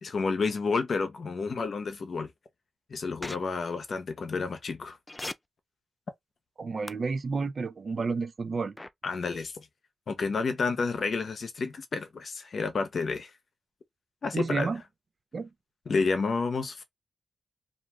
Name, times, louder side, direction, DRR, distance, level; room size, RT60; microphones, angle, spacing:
voice 1, 0.0-2.3 2.9-5.0 9.0-9.7 10.1-13.3 14.2-14.7 15.9-16.8, left 4 dB, 65° left, 0.7 m, -30 dB
sound 1, 3.2-3.4 5.1-5.3 6.9-7.0 8.8-8.9, left 2 dB, 20° left, 0.3 m, -36 dB
voice 2, 6.6-8.8 14.3-14.8 15.3-15.5, right 4 dB, 55° right, 0.5 m, -30 dB
2.5 x 2.3 x 3.1 m
cardioid pair, 60°, 0 cm